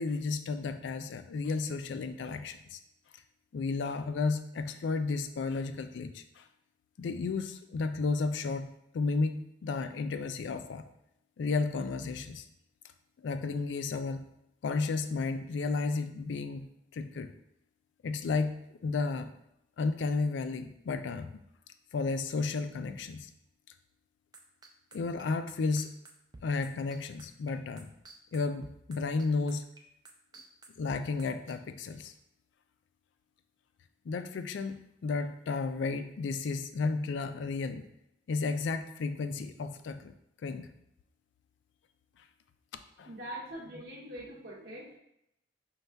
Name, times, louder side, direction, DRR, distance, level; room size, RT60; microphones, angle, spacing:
voice 1, 0.0-2.8 3.5-6.5 7.0-10.8 11.4-12.4 13.2-14.3 14.6-17.3 18.0-19.3 19.8-21.4 21.9-23.3 24.9-25.9 26.4-27.9 28.3-29.6 30.8-32.1 34.1-34.8 35.0-37.8 38.3-40.1 40.4-40.7 43.0-43.1, left 4 dB, 75° left, 9 dB, 0.3 m, -33 dB
sound 1, 24.3-31.5, right 3 dB, 20° right, 0.3 m, -51 dB
voice 2, 43.0-45.0, right 1 dB, 60° right, -4 dB, 0.8 m, -43 dB
5.3 x 2.3 x 3.3 m, 0.80 s
head